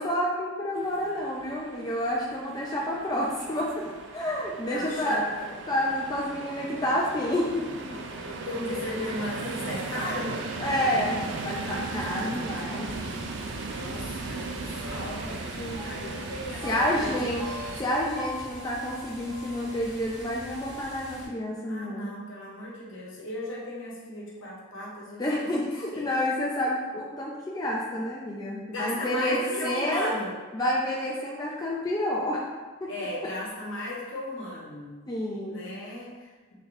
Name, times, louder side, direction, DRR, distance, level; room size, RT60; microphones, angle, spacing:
voice 1, 0.0-5.3 5.7-8.0 10.6-12.9 15.5-15.9 16.6-17.5 17.8-22.1 25.2-30.1 30.5-32.5 32.8-32.9 35.1-35.6, left 1 dB, 20° left, -4 dB, 0.3 m, -29 dB
sound 1, 0.8-17.8, right 3 dB, 60° right, 0.3 m, -37 dB
voice 2, 4.7-5.5 8.1-10.4 13.5-15.5 15.8-17.1 21.6-25.5 25.9-26.1 28.7-30.3 32.9-35.0 35.5-36.5, left 1 dB, 70° left, -4 dB, 1.0 m, -36 dB
sound 2, 12.8-21.3, equal, 20° right, 0.7 m, -45 dB
sound 3, 13.2-20.2, equal, ahead, 1.1 m, -44 dB
3.8 x 3.2 x 2.6 m, 1.3 s
head